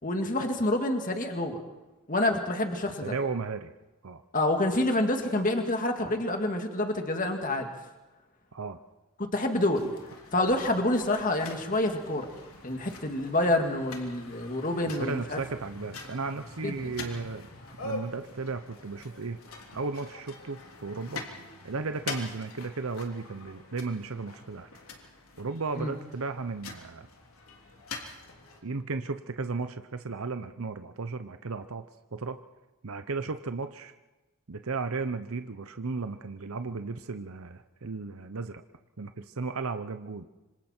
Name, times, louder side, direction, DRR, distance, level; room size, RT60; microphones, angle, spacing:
voice 1, 0.0-1.6 2.1-3.1 4.3-7.7 9.2-10.0 10.3-12.3 12.6-15.4 16.6-16.8 25.8-25.9, left 1 dB, 40° left, 4 dB, 2.2 m, -27 dB
voice 2, 3.0-3.7 4.0-4.2 8.5-8.8 15.0-17.5 17.8-19.4 19.7-21.2 21.6-24.7 25.4-27.1 28.6-31.8 32.1-32.4 32.8-33.9 34.5-38.6 39.0-40.3, right 4 dB, 85° right, 9 dB, 0.8 m, -35 dB
sound 1, 9.8-28.6, left 3 dB, 85° left, 3.2 m, -44 dB
26.5 x 25.5 x 4.5 m, 1.1 s
head